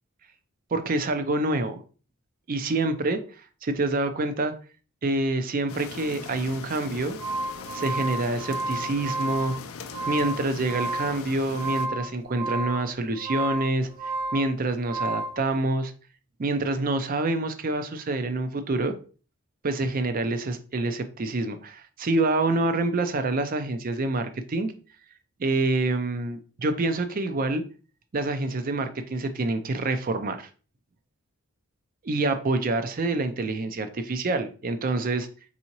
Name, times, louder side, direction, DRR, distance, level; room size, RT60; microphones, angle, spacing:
voice 1, 0.7-1.8 2.5-3.2 3.6-4.5 5.0-7.2 7.7-9.5 10.1-13.9 14.3-15.9 16.4-18.9 19.6-24.7 25.4-27.6 28.1-30.5 32.0-35.3, right 2 dB, 40° right, 0.4 m, -26 dB
sound 1, 5.7-11.9, left 5 dB, 65° left, 0.4 m, -40 dB
sound 2, 6.9-15.4, right 2 dB, 70° right, 1.7 m, -32 dB
4.1 x 3.6 x 2.9 m
head